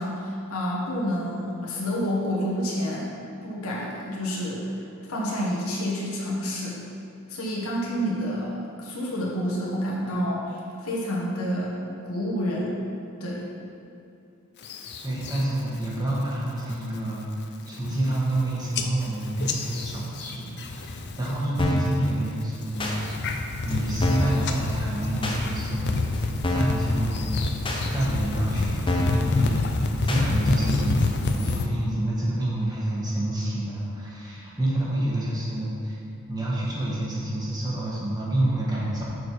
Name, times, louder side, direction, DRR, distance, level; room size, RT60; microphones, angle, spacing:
voice 1, 0.0-3.1 3.4-4.8 5.1-6.8 7.3-11.7 12.0-12.8 13.2-13.5, equal, 70° left, -5 dB, 1.3 m, -29 dB
sound 1, 14.6-15.4 15.8-16.2 16.6-17.0 17.4-17.5 17.7-18.4 18.7-21.3 21.6-22.1 22.6-31.7, left 3 dB, 50° left, 0.5 m, -28 dB
voice 2, 15.0-17.2 17.7-22.9 23.6-26.0 26.5-27.4 27.9-36.0 36.3-39.1, right 1 dB, 20° right, -6 dB, 1.6 m, -28 dB
sound 2, 21.6-21.9 22.8-23.0 23.7-23.8 24.0-24.4 25.2-25.4 26.1-26.2 26.4-26.8 27.6-27.8 28.5-28.6 28.9-29.2 30.1-30.2 31.0-31.1, left 1 dB, 25° left, 0.9 m, -26 dB
6.5 x 6.3 x 4.7 m, 2.5 s
head